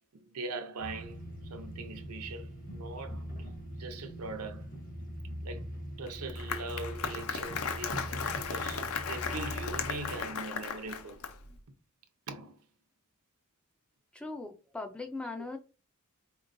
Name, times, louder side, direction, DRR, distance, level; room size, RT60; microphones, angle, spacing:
voice 1, 0.1-3.5 3.8-4.7 5.4-5.7 6.0-11.2 12.3-12.6, right 3 dB, 80° right, 0.7 m, -41 dB
sound 1, 0.8-10.2, equal, 40° left, 0.9 m, -42 dB
Applause, 6.1-11.6, left 6 dB, 70° left, 0.5 m, -36 dB
voice 2, 14.1-15.6, left 3 dB, 5° left, 0.3 m, -39 dB
4.2 x 3.0 x 2.5 m
head